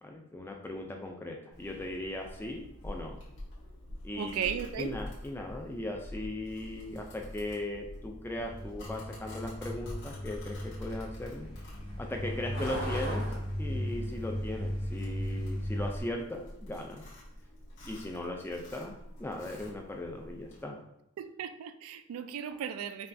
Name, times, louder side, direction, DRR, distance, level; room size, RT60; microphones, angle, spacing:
voice 1, 0.0-3.2 4.0-4.5 4.8-11.5 12.0-13.3 13.6-17.0 17.8-20.8, left 1 dB, 10° left, 2 dB, 0.3 m, -38 dB
Domestic sounds home sounds, 1.5-20.6, left 1 dB, 55° left, 1.4 m, -47 dB
voice 2, 4.1-5.0 21.2-23.1, right 8 dB, 80° right, 11 dB, 0.3 m, -36 dB
Truck, 8.4-16.0, equal, 90° left, 1.3 m, -36 dB
5.4 x 2.3 x 2.6 m, 0.79 s
head